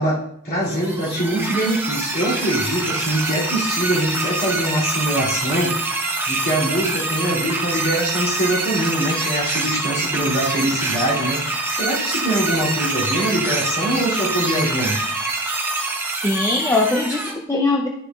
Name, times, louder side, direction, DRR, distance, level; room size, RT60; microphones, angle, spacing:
voice 1, 0.0-15.0, right 1 dB, 40° left, -5 dB, 2.5 m, -23 dB
sound 1, 0.6-17.3, right 2 dB, 10° right, 0.8 m, -25 dB
voice 2, 16.0-17.9, left 2 dB, 15° left, 0 dB, 0.5 m, -21 dB
11.5 x 6.7 x 2.3 m, 0.71 s
head